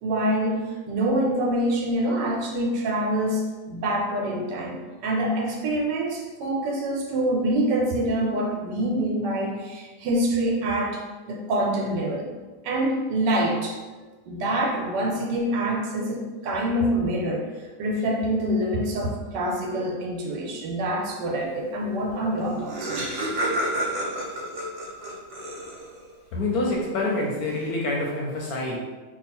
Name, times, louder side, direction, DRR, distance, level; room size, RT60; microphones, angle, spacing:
voice 1, 0.0-4.8 5.0-12.3 12.6-13.8 14.3-17.5 17.8-23.3, right 1 dB, 75° right, 0 dB, 1.2 m, -26 dB
Laughter, 22.1-22.2 22.4-26.1, right 1 dB, 55° right, 1.0 m, -30 dB
voice 2, 26.3-28.8, left 2 dB, 70° left, -2 dB, 0.9 m, -26 dB
2.8 x 2.3 x 4.2 m, 1.3 s
omnidirectional pair, 1.9 m